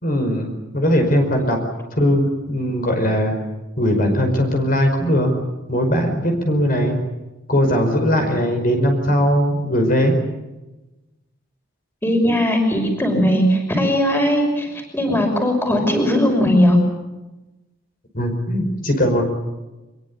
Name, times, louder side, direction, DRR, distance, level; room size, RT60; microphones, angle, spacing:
voice 1, 0.0-1.6 2.0-3.3 3.8-5.3 5.7-7.0 7.5-10.1 18.1-19.2, equal, 45° left, 4 dB, 5.2 m, -19 dB
voice 2, 12.0-16.8, equal, 10° left, 4 dB, 5.8 m, -18 dB
25.0 x 22.5 x 8.6 m, 1.1 s
head